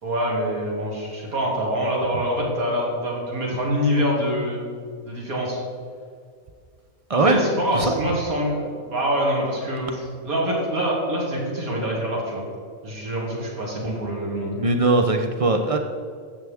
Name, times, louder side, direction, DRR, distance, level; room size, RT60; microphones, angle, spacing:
voice 1, 0.0-4.6 5.0-5.6 7.1-12.4 12.8-14.5, equal, 80° right, -3 dB, 2.7 m, -25 dB
voice 2, 7.1-7.4 7.7-7.9 14.5-15.8, right 2 dB, 60° right, 5 dB, 0.3 m, -20 dB
13.0 x 8.1 x 3.5 m, 2.1 s
omnidirectional pair, 1.5 m